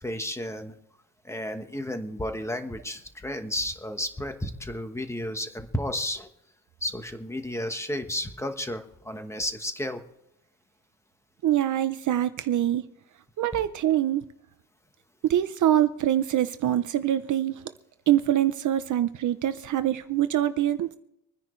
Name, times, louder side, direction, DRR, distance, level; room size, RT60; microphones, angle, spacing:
voice 1, 0.0-0.7 1.2-6.3 6.8-10.0, left 1 dB, 5° left, 1.2 m, -32 dB
voice 2, 11.4-12.9 13.4-14.2 15.2-17.6 18.1-20.9, right 12 dB, 50° right, 0.6 m, -24 dB
26.0 x 10.0 x 3.2 m
cardioid pair, 170°, 39 cm